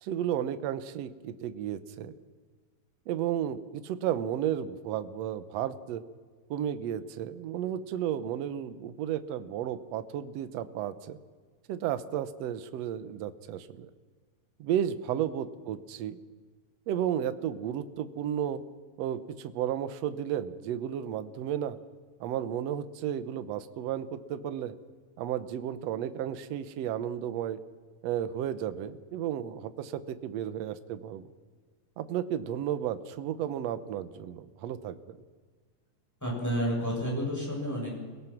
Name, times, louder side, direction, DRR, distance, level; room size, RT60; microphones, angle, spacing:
voice 1, 0.0-2.1 3.1-6.0 6.5-11.2 11.7-13.9 14.6-16.2 16.9-18.6 19.0-21.8 22.2-24.8 25.2-27.6 28.0-31.3 32.0-35.2, right 10 dB, 65° right, 12 dB, 1.7 m, -33 dB
voice 2, 36.2-37.9, equal, 5° left, -3 dB, 7.4 m, -30 dB
28.5 x 18.5 x 6.0 m, 1.5 s
omnidirectional pair, 3.8 m